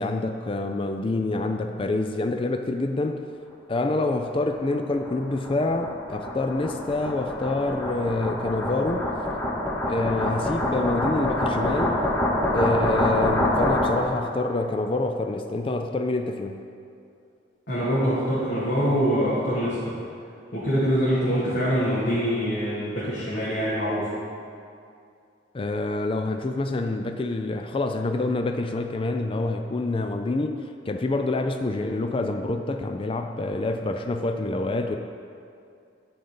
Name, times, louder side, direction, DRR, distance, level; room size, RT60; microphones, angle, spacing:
voice 1, 0.0-3.3 3.7-9.1 9.8-12.1 12.5-16.7 25.5-35.0, left 2 dB, 30° left, 6 dB, 0.4 m, -27 dB
sound 1, 4.3-14.2, left 1 dB, 15° left, 1.0 m, -26 dB
voice 2, 17.7-20.0 20.5-24.1, equal, 60° left, -11 dB, 2.3 m, -24 dB
11.0 x 4.0 x 6.9 m, 2.5 s
head